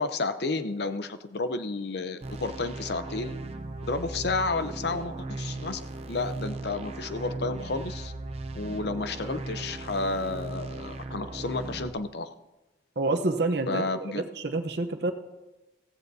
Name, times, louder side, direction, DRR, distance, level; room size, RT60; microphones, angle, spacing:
voice 1, 0.0-3.4 3.8-8.1 8.5-12.3 13.7-14.2, left 3 dB, 65° left, 11 dB, 0.7 m, -31 dB
sound 1, 2.2-11.9, right 2 dB, 35° right, 0.6 m, -37 dB
voice 2, 13.0-13.8 14.1-15.1, right 2 dB, 65° right, 6 dB, 0.9 m, -27 dB
15.5 x 15.0 x 2.7 m, 1.1 s
head